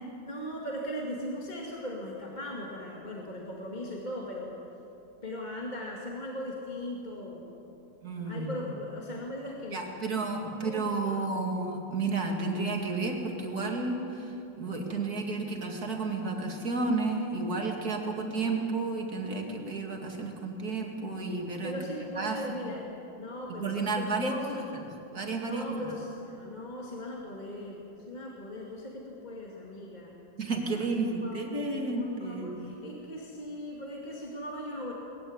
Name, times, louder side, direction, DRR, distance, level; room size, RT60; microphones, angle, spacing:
voice 1, 0.2-4.5 5.2-7.5 8.2-9.9 10.4-11.3 21.6-22.9 23.1-24.7 25.4-30.2 30.7-30.9 31.2-34.9, left 1 dB, 25° left, -2 dB, 2.3 m, -39 dB
voice 2, 8.0-8.5 9.7-21.7 22.2-22.7 23.6-24.3 25.1-25.6 30.4-32.7, right 3 dB, 55° right, 1 dB, 2.7 m, -32 dB
21.0 x 15.5 x 9.6 m, 2.9 s
omnidirectional pair, 1.9 m